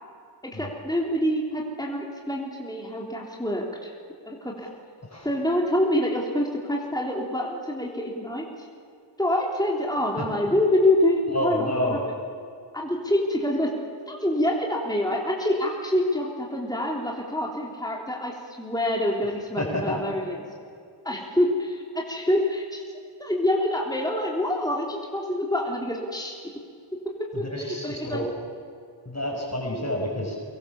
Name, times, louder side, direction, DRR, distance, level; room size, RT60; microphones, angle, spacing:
voice 1, 0.4-3.9 4.2-4.7 5.2-8.5 9.2-12.0 12.7-13.7 14.1-20.5 21.0-22.8 23.2-26.4 27.4-28.3, left 1 dB, 10° left, -1 dB, 3.6 m, -26 dB
voice 2, 11.3-12.0 19.6-20.0 27.3-28.3 29.1-30.4, left 1 dB, 35° left, 0 dB, 5.9 m, -29 dB
25.0 x 22.0 x 7.2 m, 2.3 s
wide cardioid pair, 40°, 45 cm